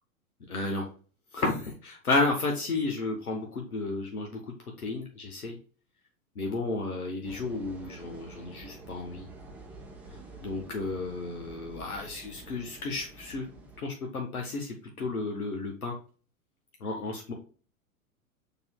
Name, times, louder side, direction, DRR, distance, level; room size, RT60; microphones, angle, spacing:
voice 1, 0.5-0.9 1.3-4.4 4.8-5.6 6.4-9.2 10.4-13.4 13.8-16.0 16.8-17.3, left 3 dB, 80° left, 2 dB, 0.9 m, -32 dB
sound 1, 7.2-13.8, right 2 dB, 5° right, 0.6 m, -48 dB
6.6 x 2.8 x 2.2 m, 0.39 s
figure-of-eight pair, 95°, 43 cm